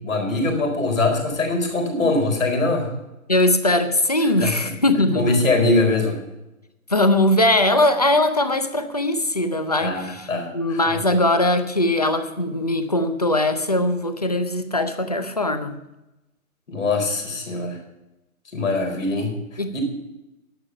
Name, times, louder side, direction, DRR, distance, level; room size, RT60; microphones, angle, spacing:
voice 1, 0.0-2.9 4.4-4.7 5.1-6.2 9.8-11.0 16.7-17.8 18.5-19.3 19.7-19.8, left 2 dB, 65° left, 3 dB, 4.4 m, -22 dB
voice 2, 3.3-5.4 6.9-10.3 10.5-15.8 19.6-19.7, left 1 dB, 30° left, 9 dB, 0.5 m, -20 dB
11.5 x 8.9 x 5.7 m, 0.95 s
hypercardioid pair, 175°, 43 cm